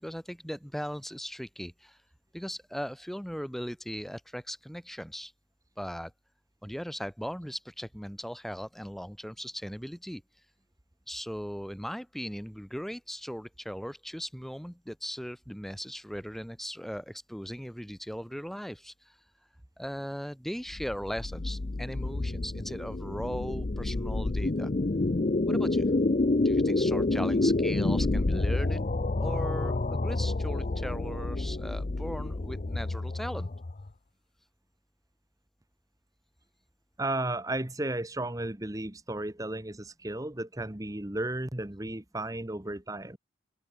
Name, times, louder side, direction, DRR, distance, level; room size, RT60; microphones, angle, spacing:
voice 1, 0.0-2.0 2.3-5.3 5.8-6.1 6.6-10.2 11.1-19.2 19.8-24.7 25.5-25.8 26.4-28.8 29.2-33.5, equal, ahead, 2.4 m, -38 dB
sound 1, 20.7-33.9, left 2 dB, 40° left, 0.6 m, -28 dB
voice 2, 37.0-43.2, right 2 dB, 15° right, 1.2 m, -34 dB
head